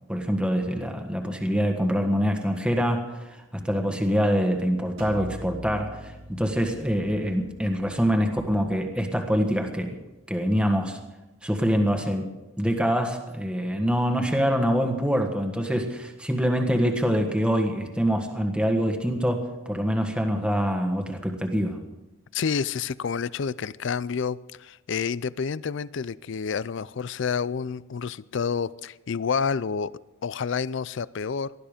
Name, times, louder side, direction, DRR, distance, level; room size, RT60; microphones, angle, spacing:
voice 1, 0.1-10.0 10.3-11.0 11.4-12.3 12.6-21.8, equal, 5° right, 3 dB, 1.5 m, -25 dB
sound 1, 5.0-10.6, right 1 dB, 70° right, 2.8 m, -45 dB
voice 2, 22.3-29.9 30.2-31.5, left 6 dB, 60° left, 19 dB, 0.4 m, -29 dB
19.0 x 12.5 x 5.1 m, 1.0 s
head